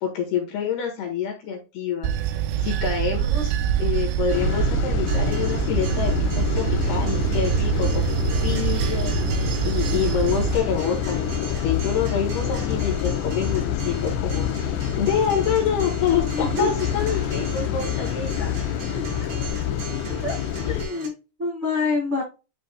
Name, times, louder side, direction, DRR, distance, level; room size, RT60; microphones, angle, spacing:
voice 1, 0.0-2.1 2.6-3.5 3.8-9.1 9.6-18.5, left 7 dB, 60° left, 2 dB, 3.1 m, -27 dB
Bell / Train, 2.0-10.6, right 10 dB, 85° right, 2.8 m, -25 dB
sound 1, 4.3-20.9, left 9 dB, 80° left, 2.6 m, -27 dB
Acoustic guitar, 5.1-21.1, right 3 dB, 65° right, 5.5 m, -39 dB
voice 2, 16.3-16.7 18.9-19.3 20.2-20.3 20.7-22.2, left 3 dB, 45° right, -4 dB, 0.9 m, -27 dB
10.5 x 5.3 x 2.3 m, 0.29 s
omnidirectional pair, 5.9 m